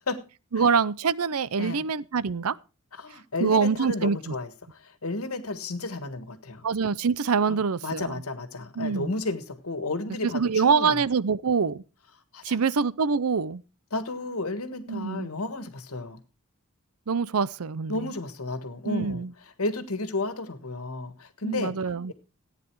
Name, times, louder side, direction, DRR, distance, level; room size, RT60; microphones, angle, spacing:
voice 1, 0.5-2.5 3.4-4.3 6.6-8.2 8.8-9.1 10.2-11.8 12.4-13.6 14.9-15.3 17.1-17.9 18.8-19.3 21.4-22.1, right 5 dB, 80° right, 0.6 m, -25 dB
voice 2, 1.6-1.9 2.9-6.6 7.5-11.0 12.3-12.6 13.9-16.2 17.9-19.2 19.6-21.7, left 2 dB, 75° left, 1.6 m, -32 dB
15.0 x 9.4 x 4.7 m
head